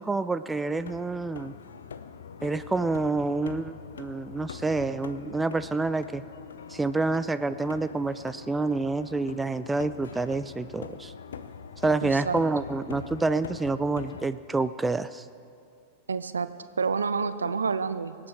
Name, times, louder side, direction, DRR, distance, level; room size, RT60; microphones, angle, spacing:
voice 1, 0.0-1.5 2.4-6.2 6.7-11.1 11.8-15.2, right 3 dB, 10° right, 13 dB, 0.4 m, -28 dB
sound 1, 0.7-14.3, left 7 dB, 65° left, 0.6 m, -43 dB
voice 2, 12.0-12.4 16.1-16.5 16.8-18.2, right 5 dB, 75° right, 13 dB, 0.6 m, -28 dB
24.5 x 8.5 x 4.6 m, 2.3 s
figure-of-eight pair, 90°, 0 cm